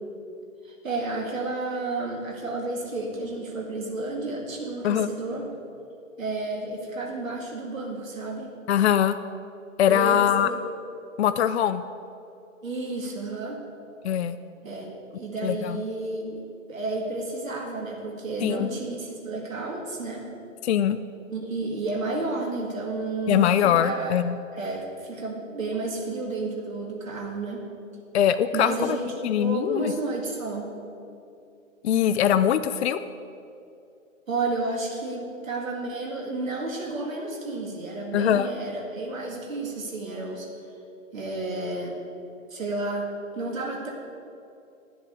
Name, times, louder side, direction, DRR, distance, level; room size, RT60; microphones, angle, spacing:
voice 1, 0.6-5.5 6.2-8.5 9.9-10.6 12.6-13.6 14.6-20.3 21.3-24.2 24.5-27.6 28.5-30.7 34.3-40.5 41.1-42.0 42.5-43.1 43.4-43.9, right 2 dB, 80° right, 0 dB, 2.2 m, -31 dB
voice 2, 8.7-9.2 9.8-10.5 11.2-11.8 14.0-14.4 15.4-15.8 18.4-18.7 20.6-21.0 23.3-24.4 28.1-29.0 29.2-29.9 31.8-33.0 38.1-38.5, left 10 dB, 55° left, 11 dB, 0.5 m, -22 dB
10.5 x 7.8 x 7.9 m, 2.6 s
hypercardioid pair, 135°, 39 cm